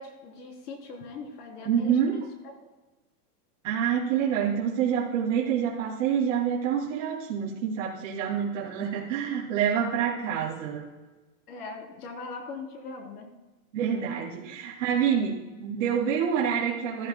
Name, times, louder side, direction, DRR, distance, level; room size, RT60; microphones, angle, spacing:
voice 1, 0.0-2.5 11.5-13.3, left 4 dB, 75° left, 1 dB, 3.6 m, -40 dB
voice 2, 1.6-2.2 3.6-10.9 13.7-17.1, right 8 dB, 55° right, -4 dB, 2.6 m, -27 dB
15.0 x 14.5 x 2.2 m, 1.2 s
supercardioid pair, 175°, 47 cm